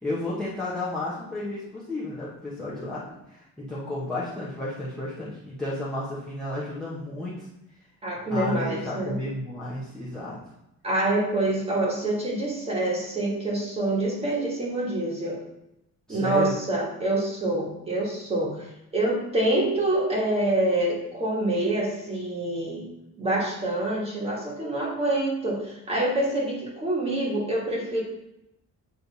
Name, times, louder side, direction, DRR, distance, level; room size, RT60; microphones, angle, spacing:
voice 1, 0.0-3.0 3.3-7.5 8.3-10.4 16.1-16.5, left 1 dB, ahead, -8 dB, 1.0 m, -32 dB
voice 2, 8.0-9.2 10.8-15.4 16.1-22.8 23.2-28.0, right 1 dB, 20° right, -4 dB, 1.6 m, -26 dB
8.4 x 3.3 x 4.1 m, 0.86 s
cardioid pair, 175°, 32 cm